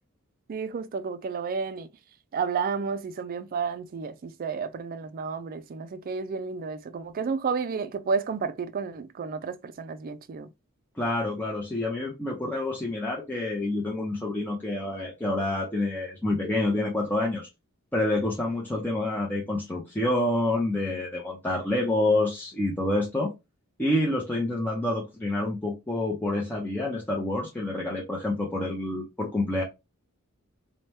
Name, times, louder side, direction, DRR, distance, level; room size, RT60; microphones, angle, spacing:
voice 1, 0.5-1.9 2.3-10.5, right 5 dB, 40° right, 0.3 m, -31 dB
voice 2, 11.0-17.5 17.9-23.3 23.8-29.6, left 2 dB, 10° left, 0.5 m, -28 dB
2.8 x 2.1 x 3.2 m
head